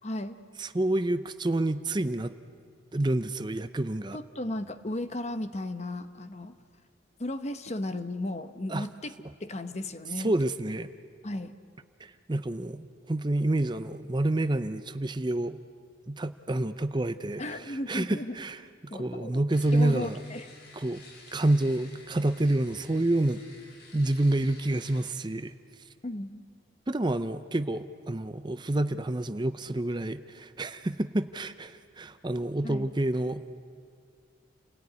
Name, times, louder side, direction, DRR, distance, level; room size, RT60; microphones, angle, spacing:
voice 1, 0.0-0.4 4.1-6.6 7.2-9.1 9.4-10.3 11.2-11.6 17.4-18.4 18.9-19.4 19.7-20.5 26.0-26.4 32.6-32.9, left 1 dB, 35° left, 10 dB, 1.0 m, -35 dB
voice 2, 0.6-2.3 2.9-4.2 8.7-8.8 10.2-10.9 12.0-15.6 16.1-18.6 18.9-20.2 20.7-21.0 21.3-23.4 23.9-25.5 26.9-33.5, right 1 dB, 25° right, 11 dB, 0.6 m, -28 dB
sound 1, 19.5-25.1, left 3 dB, 55° left, 3.7 m, -52 dB
29.5 x 18.5 x 9.7 m, 2.2 s
head